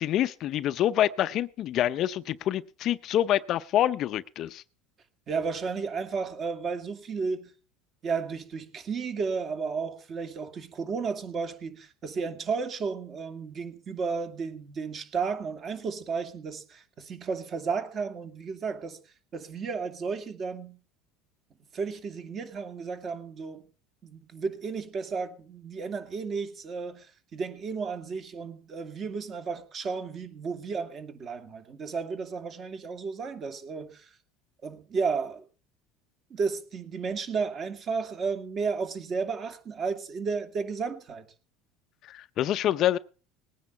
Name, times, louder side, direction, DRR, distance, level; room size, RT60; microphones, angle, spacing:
voice 1, 0.0-4.6 42.1-43.0, left 12 dB, 45° left, 0.6 m, -26 dB
voice 2, 5.3-7.5 8.0-19.0 19.3-20.8 21.7-23.7 24.0-27.1 27.3-34.1 34.6-35.5 36.3-41.2, right 5 dB, 35° right, 2.5 m, -33 dB
19.5 x 9.5 x 5.7 m
supercardioid pair, 135°, 0 cm